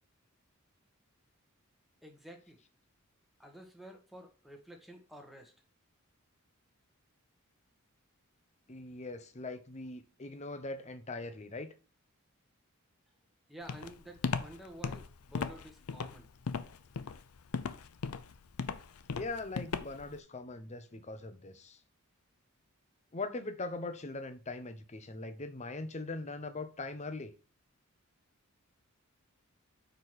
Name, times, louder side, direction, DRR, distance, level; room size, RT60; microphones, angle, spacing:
voice 1, 2.0-2.6 3.4-5.5 13.5-16.3, right 1 dB, ahead, 1.2 m, -51 dB
voice 2, 8.7-11.7 19.1-21.8 23.1-27.3, left 3 dB, 30° left, 0.7 m, -41 dB
Walk footsteps, 13.7-20.1, left 5 dB, 80° left, 0.5 m, -37 dB
5.1 x 4.6 x 6.2 m
head